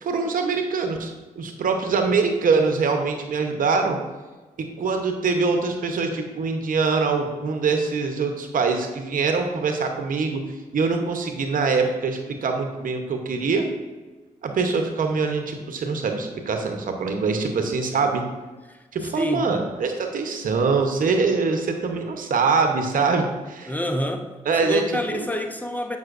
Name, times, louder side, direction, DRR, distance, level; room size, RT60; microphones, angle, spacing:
voice 1, 0.0-4.0 4.6-10.5 10.7-13.7 14.4-18.2 18.9-23.7 24.5-24.8 25.1-25.3, right 4 dB, 65° right, 0.9 m, -23 dB
voice 2, 18.7-19.6 23.7-26.0, left 1 dB, 10° left, 0.7 m, -28 dB
7.6 x 5.6 x 2.5 m
supercardioid pair, 45°, 15 cm